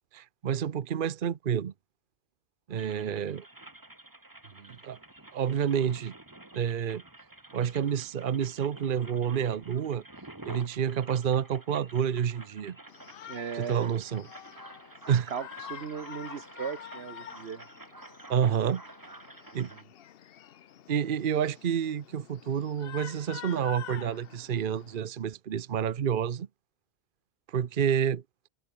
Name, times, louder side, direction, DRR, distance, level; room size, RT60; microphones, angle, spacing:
voice 1, 0.1-1.7 2.7-3.4 4.8-5.0 5.3-6.1 6.5-7.0 7.5-10.0 10.4-12.8 13.5-14.3 15.1-15.3 18.3-18.8 19.5-19.7 20.9-26.5 27.5-28.2, right 8 dB, 55° right, 0.9 m, -29 dB
sound 1, 2.8-19.8, right 2 dB, 20° right, 1.8 m, -49 dB
voice 2, 2.8-3.1 4.4-4.8 13.3-13.9 15.1-17.6 18.5-18.7 19.5-19.8, right 7 dB, 80° right, 1.4 m, -38 dB
Shout, 12.9-25.0, left 10 dB, 70° left, 0.9 m, -48 dB
omnidirectional pair, 1.1 m